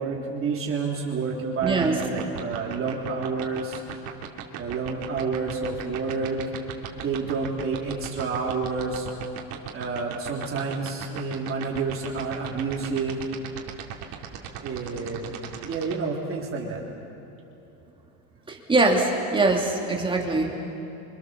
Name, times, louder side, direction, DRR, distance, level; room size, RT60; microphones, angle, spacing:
voice 1, 0.0-3.8 4.6-6.4 7.0-9.1 9.7-13.2 14.6-15.3 15.6-16.8, right 4 dB, 30° right, -2 dB, 3.6 m, -29 dB
voice 2, 1.6-1.9 18.5-20.6, right 2 dB, 10° right, 1 dB, 2.9 m, -22 dB
sound 1, 1.6-15.9, right 11 dB, 55° right, 3.1 m, -36 dB
29.5 x 26.0 x 7.2 m, 3.0 s
cardioid pair, 155°, 44 cm